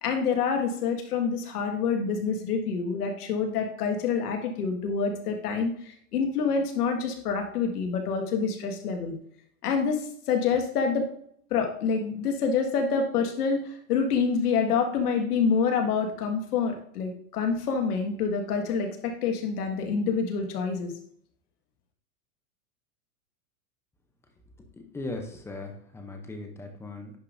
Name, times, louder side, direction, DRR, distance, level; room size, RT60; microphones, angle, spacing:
voice 1, 0.0-9.1 9.6-10.0 10.3-11.1 11.5-20.9, left 5 dB, 80° left, 3 dB, 1.8 m, -27 dB
voice 2, 24.9-27.1, left 2 dB, 5° left, 4 dB, 0.6 m, -38 dB
10.0 x 5.1 x 2.6 m, 0.64 s
supercardioid pair, 145°, 45 cm